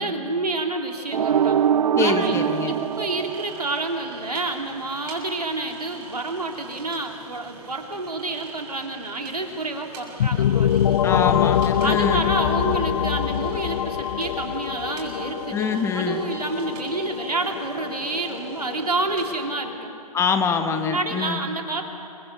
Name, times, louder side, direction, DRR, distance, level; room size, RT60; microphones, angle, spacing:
voice 1, 0.0-1.6 2.0-11.0 11.8-19.9 20.8-21.8, right 2 dB, 85° right, 3 dB, 3.2 m, -29 dB
sound 1, 1.1-4.1, right 8 dB, 70° right, 0.5 m, -23 dB
voice 2, 1.9-2.7 11.0-12.2 15.5-16.2 20.1-21.4, left 6 dB, 15° left, 7 dB, 1.4 m, -25 dB
sound 2, 2.2-19.4, right 4 dB, 35° right, 6.7 m, -44 dB
sound 3, 10.2-19.8, left 9 dB, 60° left, 0.5 m, -25 dB
28.5 x 24.0 x 6.9 m, 3.0 s
figure-of-eight pair, 120°, 19 cm